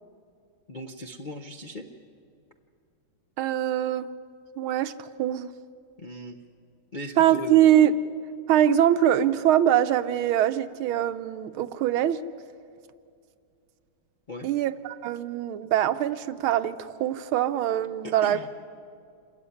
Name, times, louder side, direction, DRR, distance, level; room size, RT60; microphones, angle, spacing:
voice 1, 0.7-1.9 6.0-6.4 6.9-7.6 14.3-14.5 18.0-18.5, left 1 dB, 50° left, 2 dB, 0.5 m, -38 dB
voice 2, 3.4-4.1 4.6-5.5 7.2-7.9 8.5-12.2 14.4-18.5, right 11 dB, 90° right, 11 dB, 1.6 m, -23 dB
27.0 x 13.5 x 9.8 m, 2.3 s
omnidirectional pair, 2.2 m